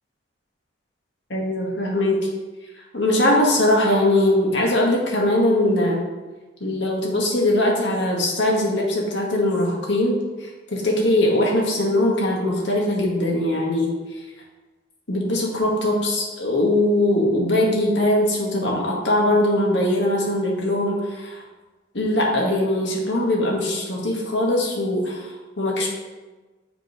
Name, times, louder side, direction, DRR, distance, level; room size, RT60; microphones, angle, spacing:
voice 1, 1.3-2.3 2.8-6.0 6.6-13.9 15.1-21.4 21.9-25.9, left 1 dB, 75° left, -2 dB, 1.9 m, -21 dB
7.3 x 5.4 x 5.2 m, 1.2 s
head